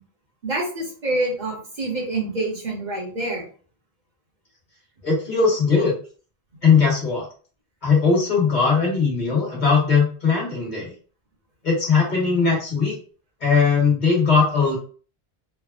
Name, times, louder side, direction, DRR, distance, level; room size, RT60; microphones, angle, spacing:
voice 1, 0.4-3.5, right 2 dB, 50° right, -2 dB, 0.9 m, -26 dB
voice 2, 5.0-5.9 6.6-7.3 7.8-10.9 11.6-12.9 13.4-14.8, left 5 dB, 50° left, -4 dB, 1.3 m, -19 dB
3.3 x 2.0 x 2.4 m, 0.40 s
omnidirectional pair, 1.0 m